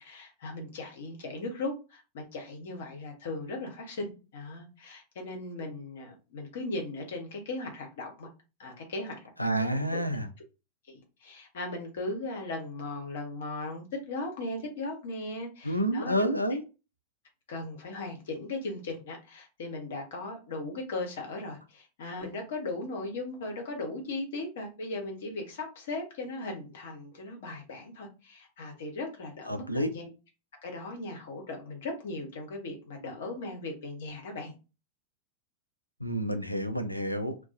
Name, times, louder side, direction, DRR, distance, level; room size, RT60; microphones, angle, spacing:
voice 1, 0.0-8.3 8.6-10.0 10.9-16.3 17.5-30.1 30.6-34.5, left 2 dB, 60° left, 2 dB, 0.9 m, -38 dB
voice 2, 9.4-10.3 15.6-16.6 29.5-29.9 36.0-37.4, equal, 90° left, 7 dB, 0.4 m, -29 dB
2.3 x 2.2 x 2.5 m, 0.31 s
figure-of-eight pair, 90°, 0 cm